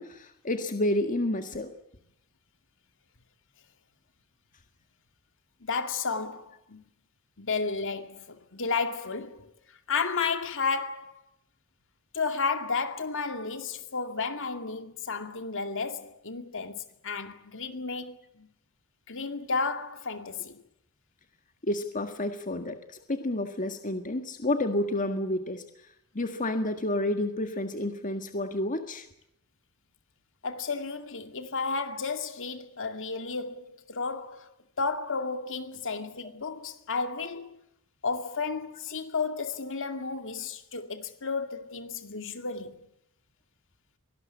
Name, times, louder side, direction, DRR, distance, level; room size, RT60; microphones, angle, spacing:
voice 1, 0.0-1.7 21.6-25.7 26.1-29.1, left 1 dB, 35° left, 1.7 m, -30 dB
voice 2, 5.6-6.8 7.4-9.5 9.9-11.2 12.1-18.5 19.1-20.6 30.4-34.5 34.8-37.6 38.0-42.8, left 4 dB, 60° left, 2.3 m, -32 dB
24.5 x 18.5 x 8.6 m
head